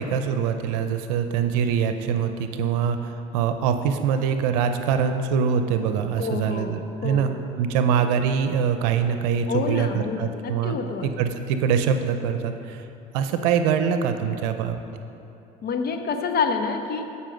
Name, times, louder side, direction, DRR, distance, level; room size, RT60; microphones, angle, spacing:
voice 1, 0.0-12.9 13.1-14.8, right 7 dB, 85° right, 8 dB, 0.6 m, -24 dB
voice 2, 6.2-6.8 7.0-7.4 9.5-11.1 15.6-17.1, left 5 dB, 50° left, 6 dB, 1.1 m, -27 dB
15.5 x 5.7 x 5.1 m, 2.9 s
supercardioid pair, 90°, 21 cm